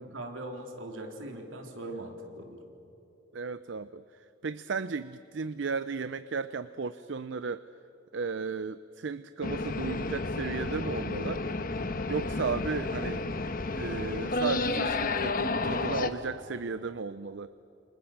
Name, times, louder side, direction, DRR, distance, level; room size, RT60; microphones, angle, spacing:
voice 1, 0.0-2.6, right 1 dB, 80° right, 2 dB, 3.8 m, -40 dB
voice 2, 3.3-7.7 8.1-11.6 12.1-13.4 13.7-17.5, right 5 dB, 65° right, 14 dB, 0.6 m, -35 dB
sound 1, 9.4-16.1, left 3 dB, 45° left, 1.1 m, -31 dB
28.5 x 26.0 x 7.4 m, 2.8 s
head